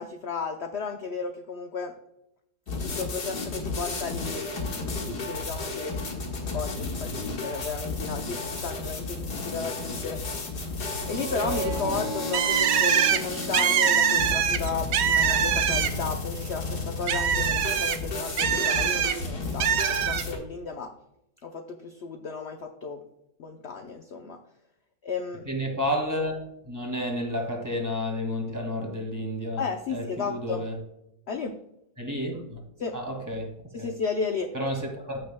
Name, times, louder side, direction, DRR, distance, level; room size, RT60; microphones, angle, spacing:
voice 1, 0.0-1.9 2.8-10.2 11.1-20.9 21.4-23.0 23.4-24.4 25.0-25.5 29.6-30.7 31.3-31.6 32.8-33.0 33.7-34.5, left 5 dB, 55° left, 5 dB, 0.8 m, -34 dB
sound 1, 2.7-20.4, left 3 dB, 85° left, 2.2 m, -33 dB
sound 2, 10.9-14.5, right 5 dB, 80° right, 1.5 m, -37 dB
Bird, 12.3-16.2 16.5-19.1 19.6-20.2, right 8 dB, 65° right, 0.7 m, -24 dB
voice 2, 25.5-26.4 26.7-29.6 29.9-30.7 32.0-32.6 32.9-33.5 33.8-33.9 34.5-35.3, left 1 dB, 10° right, 1 dB, 1.9 m, -31 dB
14.5 x 6.3 x 2.2 m, 0.79 s
omnidirectional pair, 1.7 m